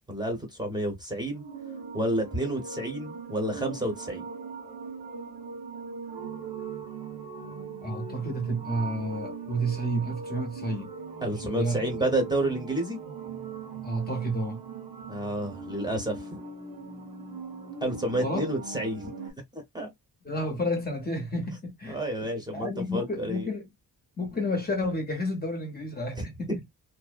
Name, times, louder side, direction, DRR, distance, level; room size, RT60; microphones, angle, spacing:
voice 1, 0.1-1.4 1.9-4.3 11.2-13.0 15.1-16.3 17.8-19.1 19.5-19.9 21.9-23.5 26.2-26.3, right 1 dB, 10° right, 0.8 m, -30 dB
sound 1, 1.4-19.3, right 5 dB, 90° right, 1.0 m, -40 dB
voice 2, 7.8-10.9 11.3-11.8 13.8-14.6 18.2-18.5 20.2-23.7 24.2-26.5, equal, 25° left, 0.7 m, -31 dB
2.5 x 2.1 x 2.3 m
wide cardioid pair, 135°, 37 cm